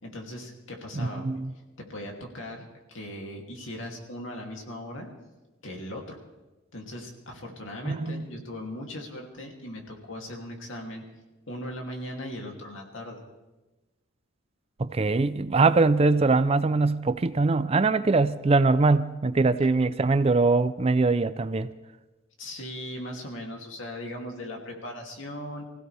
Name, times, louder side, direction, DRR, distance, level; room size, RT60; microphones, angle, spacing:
voice 1, 0.0-1.4 1.9-5.1 5.6-6.2 6.7-11.0 11.5-13.2 22.4-25.6, left 1 dB, 65° left, 1 dB, 2.8 m, -38 dB
voice 2, 1.0-1.5 7.9-8.3 14.8-21.7, right 3 dB, 30° right, 13 dB, 0.4 m, -22 dB
25.5 x 16.0 x 3.4 m, 1.1 s
head